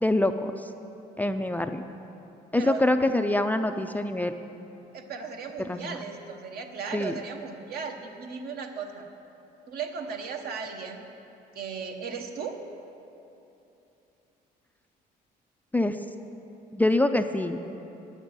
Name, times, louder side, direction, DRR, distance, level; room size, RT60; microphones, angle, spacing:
voice 1, 0.0-0.7 1.2-1.8 2.5-4.4 5.7-6.0 6.9-7.1 15.7-16.0 16.7-17.6, left 1 dB, 10° left, 7 dB, 0.4 m, -25 dB
voice 2, 4.9-9.1 9.7-11.1 11.5-12.6, right 5 dB, 65° right, 4 dB, 1.1 m, -36 dB
9.4 x 6.8 x 8.8 m, 3.0 s
cardioid pair, 110°, 17 cm